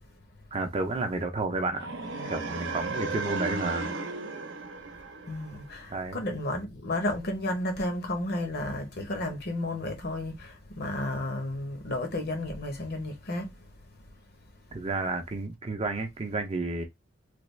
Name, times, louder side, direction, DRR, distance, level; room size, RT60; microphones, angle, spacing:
voice 1, 0.5-1.9 2.2-3.9 5.9-6.2 14.7-16.8, right 3 dB, 30° right, 0.5 m, -31 dB
sound 1, 1.7-5.8, right 3 dB, 70° right, 0.7 m, -35 dB
voice 2, 5.3-13.5, left 1 dB, 55° left, 0.8 m, -32 dB
3.3 x 2.3 x 3.2 m
head